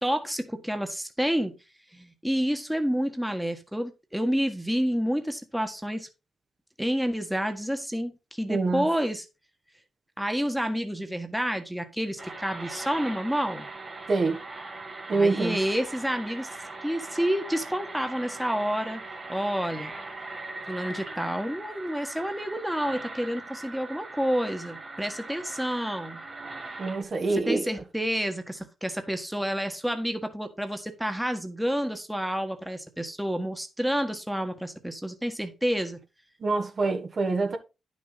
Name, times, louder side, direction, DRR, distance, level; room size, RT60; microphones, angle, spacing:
voice 1, 0.0-1.5 1.9-6.1 6.8-9.2 10.2-13.7 15.1-16.5 16.8-19.0 19.3-19.9 20.7-26.2 27.3-36.0, equal, 5° right, 1.6 m, -29 dB
voice 2, 8.5-8.9 14.1-14.4 15.1-15.6 26.8-27.7 36.4-37.6, right 3 dB, 50° right, 1.8 m, -25 dB
sound 1, 12.2-27.0, right 2 dB, 30° right, 2.9 m, -40 dB
10.0 x 6.4 x 4.1 m
cardioid pair, 65°, 0 cm